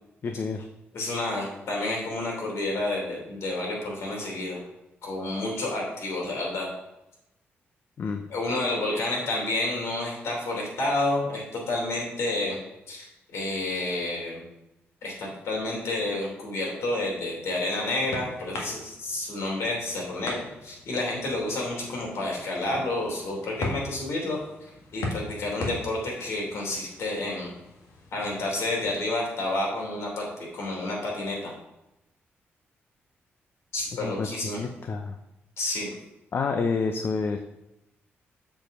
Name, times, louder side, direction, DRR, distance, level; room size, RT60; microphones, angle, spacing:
voice 1, 0.2-0.7 8.0-8.2 8.9-9.0 34.0-34.3 34.6-35.2 36.3-37.4, left 4 dB, 55° left, 6 dB, 0.7 m, -28 dB
voice 2, 0.9-4.6 5.0-6.7 8.3-12.6 12.9-13.1 13.3-14.4 15.0-24.4 24.9-27.5 28.1-31.5 33.7-34.6 35.6-35.9, left 2 dB, 70° left, -2 dB, 3.2 m, -30 dB
sound 1, 17.4-28.1, left 2 dB, 90° left, 1.7 m, -40 dB
7.6 x 4.7 x 5.4 m, 0.92 s
cardioid pair, 80°, 5 cm